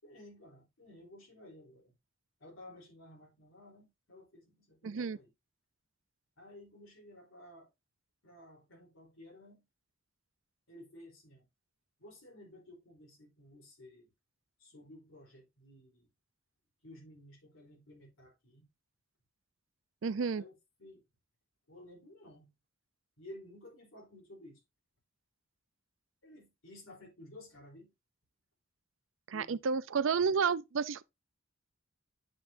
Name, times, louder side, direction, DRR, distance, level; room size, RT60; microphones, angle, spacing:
voice 1, 0.0-1.9 2.4-5.3 6.4-7.7 8.2-9.6 10.7-11.5 12.0-14.1 14.6-16.1 16.8-18.7 20.3-21.0 21.7-22.5 23.2-24.6 26.2-27.9 29.3-29.5, left 1 dB, 80° left, 3.7 m, -54 dB
voice 2, 4.8-5.2 20.0-20.4 29.3-31.0, right 5 dB, 75° right, 0.5 m, -31 dB
7.7 x 6.7 x 2.6 m
head